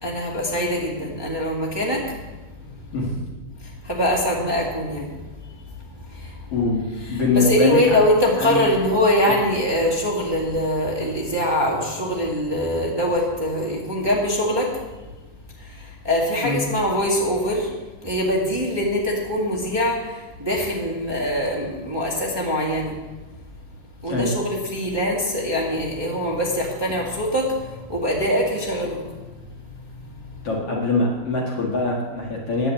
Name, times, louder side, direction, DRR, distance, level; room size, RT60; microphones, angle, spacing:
voice 1, 0.0-2.1 3.6-5.2 6.1-6.4 7.1-14.8 15.7-17.7 18.0-22.9 24.0-29.0, equal, 10° right, -3 dB, 1.2 m, -23 dB
voice 2, 6.5-8.0 8.4-8.6 16.4-16.6 24.1-24.3 30.4-32.7, left 3 dB, 50° left, -3 dB, 2.6 m, -23 dB
9.8 x 8.5 x 8.5 m, 1.2 s
omnidirectional pair, 3.8 m